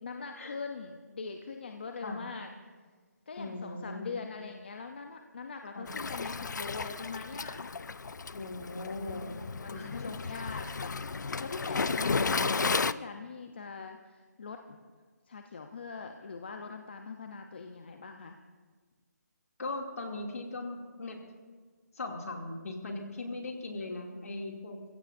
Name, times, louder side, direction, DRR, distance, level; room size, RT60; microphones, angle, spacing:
voice 1, 0.0-2.5 3.3-7.6 9.1-14.8 15.3-18.4, left 4 dB, 35° left, 5 dB, 0.7 m, -42 dB
voice 2, 3.4-4.1 5.7-5.9 8.3-10.0 11.9-12.6 19.6-21.2 21.9-24.8, left 2 dB, 55° left, 1 dB, 2.6 m, -39 dB
Waves surf, 5.9-12.9, left 4 dB, 90° left, 0.5 m, -33 dB
28.5 x 16.0 x 2.6 m, 1.5 s
hypercardioid pair, 175°, 9 cm